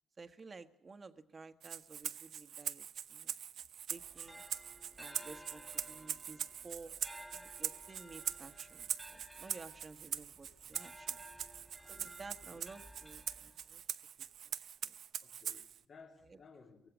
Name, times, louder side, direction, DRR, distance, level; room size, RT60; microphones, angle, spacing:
voice 1, 0.2-3.3 3.9-4.4 5.0-6.9 7.3-11.2 11.9-13.8 14.2-14.5 14.8-14.9 16.2-16.4, right 4 dB, 35° right, 1.5 m, -53 dB
Rattle (instrument), 1.6-15.8, right 9 dB, 70° right, 0.9 m, -43 dB
sound 1, 3.9-13.8, equal, ahead, 1.3 m, -56 dB
voice 2, 15.2-16.9, left 5 dB, 50° left, 2.6 m, -58 dB
24.0 x 17.0 x 6.3 m
cardioid pair, 90°, 0 cm